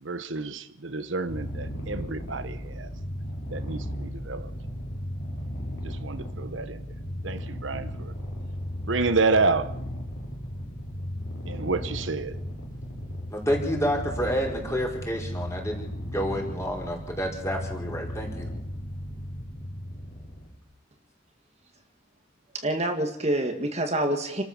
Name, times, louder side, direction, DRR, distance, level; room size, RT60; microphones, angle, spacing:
voice 1, 0.0-2.9 3.5-4.5 5.8-6.8 7.2-8.1 8.8-9.7 11.5-12.4, right 3 dB, 85° right, 1.1 m, -29 dB
Purr, 1.2-20.6, equal, 70° left, 4.3 m, -36 dB
voice 2, 13.3-18.5, equal, 15° left, 5.3 m, -29 dB
voice 3, 22.5-24.4, right 1 dB, 35° right, 2.0 m, -27 dB
29.0 x 13.5 x 7.3 m
head